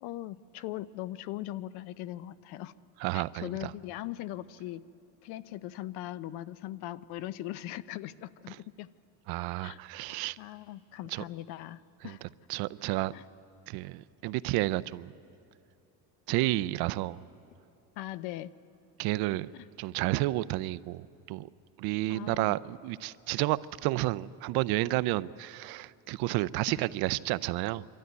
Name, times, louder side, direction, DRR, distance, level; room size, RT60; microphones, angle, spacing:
voice 1, 0.0-2.7 3.1-4.8 5.2-8.9 9.6-9.8 10.1-12.2 13.1-13.2 18.0-18.5 19.5-19.7 22.1-22.6, left 14 dB, 80° left, 17 dB, 0.7 m, -40 dB
voice 2, 3.0-3.7 9.3-10.4 11.1-11.2 12.0-12.2 12.5-13.1 13.7-15.1 16.3-17.2 19.0-19.5 19.8-21.5 21.8-27.9, right 18 dB, 70° right, 17 dB, 0.6 m, -31 dB
26.0 x 13.0 x 9.4 m, 2.8 s
cardioid pair, 150°, 38 cm